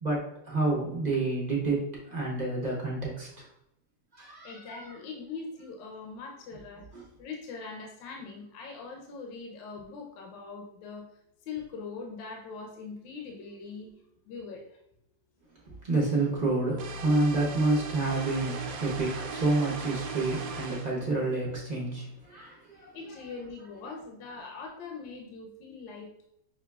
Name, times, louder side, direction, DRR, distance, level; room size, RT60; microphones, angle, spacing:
voice 1, 0.0-1.8 2.1-3.3 4.1-4.8 6.9-7.0 15.8-23.0, right 2 dB, 35° right, -3 dB, 0.7 m, -29 dB
voice 2, 4.4-6.8 7.2-11.1 11.5-14.8 22.9-26.2, left 4 dB, 85° left, 1 dB, 1.3 m, -42 dB
sound 1, 16.8-20.9, right 3 dB, 90° right, 1.3 m, -38 dB
6.0 x 2.9 x 2.3 m, 0.78 s
omnidirectional pair, 2.0 m